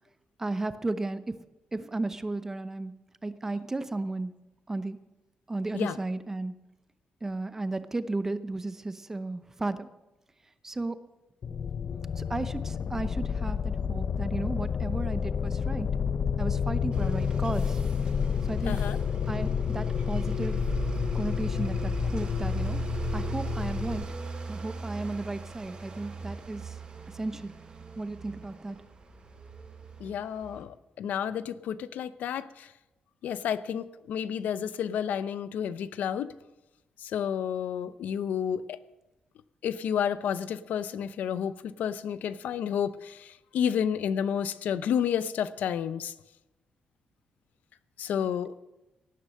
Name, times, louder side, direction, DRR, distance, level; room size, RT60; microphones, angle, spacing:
voice 1, 0.4-1.4 1.7-4.4 4.7-5.0 5.5-6.6 7.2-9.9 10.6-11.0 12.2-15.9 16.4-17.8 18.4-18.8 19.3-20.6 21.1-24.1 24.5-26.8 27.1-27.5 28.0-28.8 48.2-48.3, right 2 dB, 15° right, 12 dB, 0.7 m, -34 dB
sound 1, 11.4-24.0, left 7 dB, 45° left, 0.6 m, -30 dB
sound 2, 16.9-30.6, right 4 dB, 35° right, 2.8 m, -39 dB
voice 2, 18.6-19.0 30.0-32.7 33.2-36.3 37.0-38.8 39.6-46.1 48.0-48.6, left 8 dB, 90° left, 14 dB, 0.7 m, -31 dB
18.0 x 10.0 x 6.4 m, 1.0 s
wide cardioid pair, 160°, 3 cm